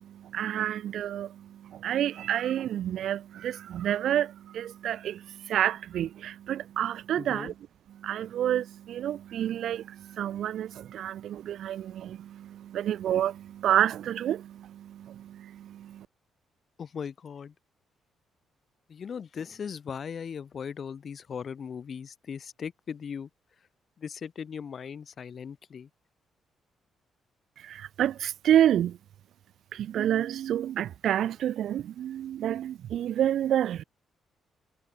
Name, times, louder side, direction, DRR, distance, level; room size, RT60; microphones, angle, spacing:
voice 1, 0.0-16.1 27.6-29.0 29.7-33.8, right 11 dB, 70° right, 3.2 m, -29 dB
voice 2, 7.2-7.5 16.8-17.5 18.9-23.3 24.0-25.9, left 7 dB, 50° left, 6.2 m, -38 dB
cardioid pair, 90°, 0 cm